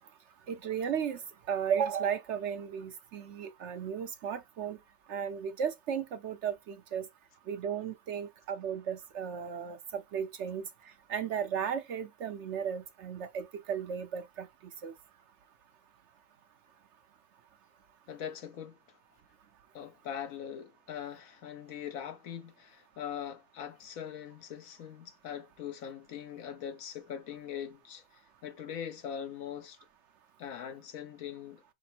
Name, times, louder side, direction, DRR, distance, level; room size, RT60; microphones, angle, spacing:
voice 1, 0.5-1.2 1.5-4.8 5.1-7.1 7.5-10.7 11.1-14.5 14.8-14.9, right 7 dB, 65° right, 0.8 m, -35 dB
voice 2, 18.1-19.0 19.7-29.8 30.4-31.6, left 9 dB, 75° left, 1.2 m, -42 dB
6.0 x 2.1 x 4.2 m
omnidirectional pair, 1.5 m